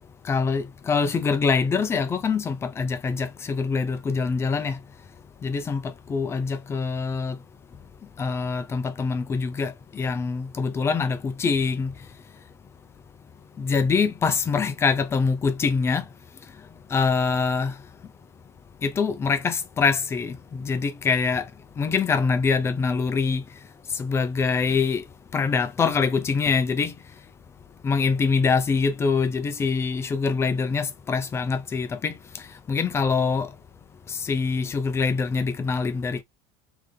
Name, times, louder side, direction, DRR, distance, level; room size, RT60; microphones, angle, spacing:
voice 1, 0.3-4.8 5.4-5.8 6.1-7.4 8.2-11.9 13.6-16.0 16.9-17.7 18.8-21.4 21.8-23.4 24.0-25.0 25.3-26.9 27.8-32.1 32.7-33.5 34.2-36.2, left 5 dB, 15° left, 0.5 m, -24 dB
3.8 x 3.4 x 3.3 m
cardioid pair, 175°, 16 cm